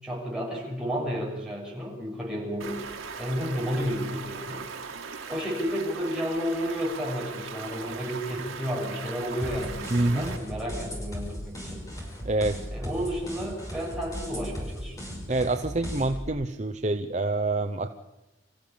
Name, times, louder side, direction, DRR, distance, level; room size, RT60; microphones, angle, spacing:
voice 1, 0.0-2.8 3.2-4.7 5.3-11.8 12.7-15.0, equal, 5° right, -4 dB, 6.9 m, -32 dB
Stream, 2.6-10.4, right 5 dB, 85° right, 2.6 m, -39 dB
sound 1, 9.4-16.3, equal, 15° left, 6.0 m, -37 dB
voice 2, 9.9-10.4 12.2-12.6 15.3-17.9, right 2 dB, 35° right, 7 dB, 0.8 m, -26 dB
26.5 x 15.0 x 8.6 m, 0.99 s
head